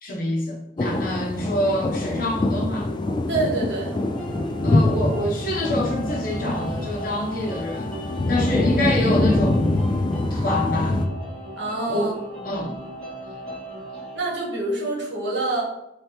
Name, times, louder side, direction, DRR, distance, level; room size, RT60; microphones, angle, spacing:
voice 1, 0.0-2.9 4.6-8.0 8.3-9.7 10.3-11.0 11.9-12.2 12.4-12.8, left 1 dB, 50° left, 1.1 m, -26 dB
sound 1, 0.8-11.1, left 2 dB, 25° left, 0.3 m, -24 dB
voice 2, 3.3-3.9 11.6-12.1 14.1-15.6, right 2 dB, 75° right, 1.4 m, -26 dB
sound 2, 3.9-14.2, left 1 dB, 5° left, 1.5 m, -36 dB
3.4 x 3.3 x 4.3 m
head